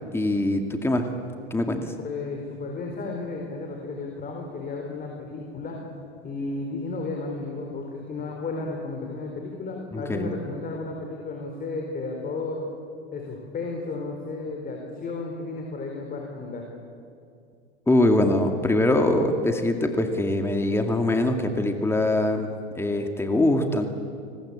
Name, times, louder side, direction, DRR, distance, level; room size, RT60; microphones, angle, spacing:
voice 1, 0.1-1.1 1.5-1.9 9.9-10.3 17.9-22.5 22.8-23.9, left 1 dB, 5° left, 5 dB, 2.2 m, -23 dB
voice 2, 2.0-5.8 6.2-12.7 13.1-16.6, left 3 dB, 25° left, 1 dB, 4.5 m, -33 dB
28.5 x 20.0 x 8.7 m, 2.4 s
hypercardioid pair, 110°, 33 cm